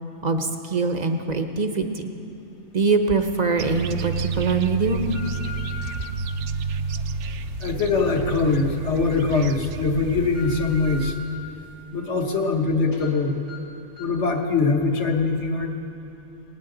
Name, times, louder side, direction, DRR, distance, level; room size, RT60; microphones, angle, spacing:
voice 1, 0.2-2.1 2.7-5.1 6.0-6.1, right 4 dB, 40° right, 6 dB, 0.7 m, -23 dB
sound 1, 2.8-2.9 3.5-3.9 4.5-6.1 6.8-9.1 9.5-9.6 10.0-11.3 11.8-12.7 12.9-13.1 13.5-13.6 14.0-14.2 14.6-14.7, left 4 dB, 80° left, 3.8 m, -42 dB
sound 2, 3.6-11.1, right 5 dB, 70° right, 0.9 m, -30 dB
voice 2, 7.6-11.2 11.9-13.3 14.0-15.7, left 4 dB, 60° left, 3 dB, 1.5 m, -22 dB
18.5 x 18.0 x 3.9 m, 2.8 s
omnidirectional pair, 1.4 m